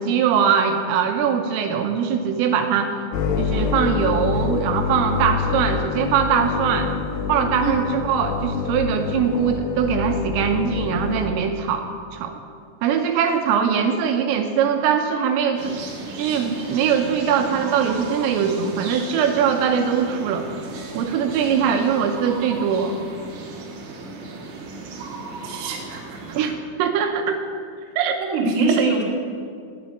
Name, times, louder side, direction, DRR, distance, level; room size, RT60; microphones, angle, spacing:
voice 1, 0.0-2.9 3.4-6.9 7.3-11.9 12.1-12.3 12.8-15.8 16.2-20.5 20.9-22.9 26.3-27.4 28.0-28.2 28.7-28.8, right 7 dB, 85° right, 5 dB, 3.4 m, -21 dB
sound 1, 3.1-11.3, left 6 dB, 80° left, 2.4 m, -26 dB
sound 2, 15.6-26.5, right 3 dB, 70° right, 2.0 m, -36 dB
voice 2, 25.4-26.2 28.2-29.0, right 3 dB, 50° right, -2 dB, 2.4 m, -23 dB
9.8 x 9.6 x 9.7 m, 2.2 s
omnidirectional pair, 5.9 m